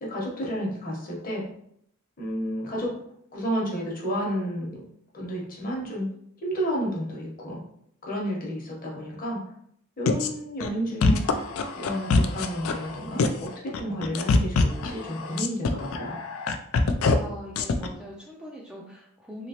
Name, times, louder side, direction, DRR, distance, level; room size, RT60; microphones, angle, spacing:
voice 1, 0.0-1.5 2.2-3.0 3.3-4.8 5.1-6.1 6.4-7.6 8.0-9.4 10.0-11.2 11.7-13.5 13.8-16.2, equal, 40° left, -2 dB, 0.9 m, -31 dB
sound 1, 10.1-10.3 10.6-10.7 11.0-12.9 13.2-13.5 13.7-17.1 17.6-17.9, left 4 dB, 70° left, 0.3 m, -23 dB
voice 2, 17.1-19.5, equal, 5° right, -3 dB, 0.3 m, -41 dB
3.0 x 2.9 x 2.8 m, 0.71 s
head